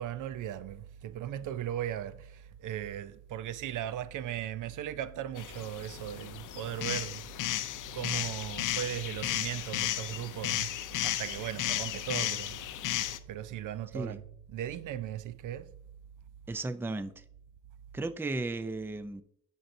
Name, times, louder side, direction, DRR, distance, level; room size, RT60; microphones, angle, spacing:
voice 1, 0.0-7.3 7.9-10.7 11.0-12.6 13.3-15.7, right 11 dB, 70° right, 0.5 m, -37 dB
sound 1, 5.4-13.2, left 12 dB, 70° left, 0.6 m, -34 dB
voice 2, 16.5-17.1 17.9-19.2, right 2 dB, 5° right, 0.4 m, -35 dB
10.0 x 5.4 x 2.6 m
cardioid pair, 75°, 32 cm